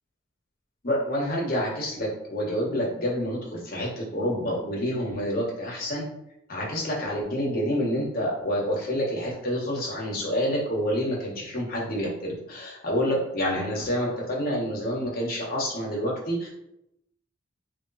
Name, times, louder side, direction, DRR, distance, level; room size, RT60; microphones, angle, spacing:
voice 1, 0.8-6.0 6.5-16.5, equal, 50° left, -3 dB, 1.3 m, -28 dB
3.2 x 2.9 x 4.1 m, 0.82 s
head